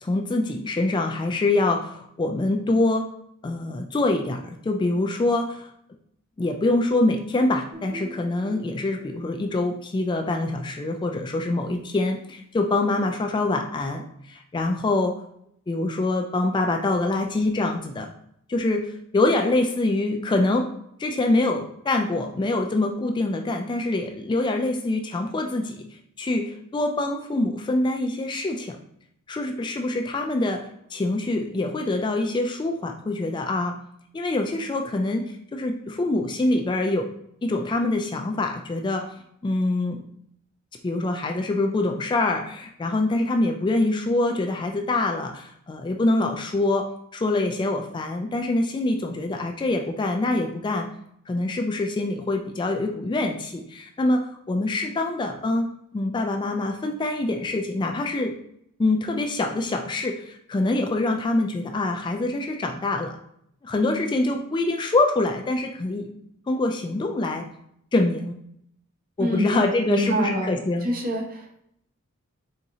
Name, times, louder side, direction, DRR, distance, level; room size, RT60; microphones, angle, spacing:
voice 1, 0.0-3.1 3.4-5.7 6.4-15.1 15.7-18.1 18.5-20.7 21.0-25.8 26.2-28.8 29.3-33.8 34.1-35.2 35.5-37.1 37.4-39.0 39.4-40.0 40.8-46.9 47.1-50.9 51.3-54.2 54.5-55.7 55.9-58.3 58.8-63.1 63.6-66.1 66.5-67.5 67.9-68.4 69.2-70.9, left 2 dB, 20° left, 3 dB, 0.3 m, -25 dB
Guitar, 7.7-11.4, right 2 dB, 75° right, 1.5 m, -45 dB
voice 2, 69.2-69.6 69.9-71.6, equal, 45° right, 2 dB, 0.8 m, -27 dB
4.1 x 3.6 x 2.8 m, 0.72 s
head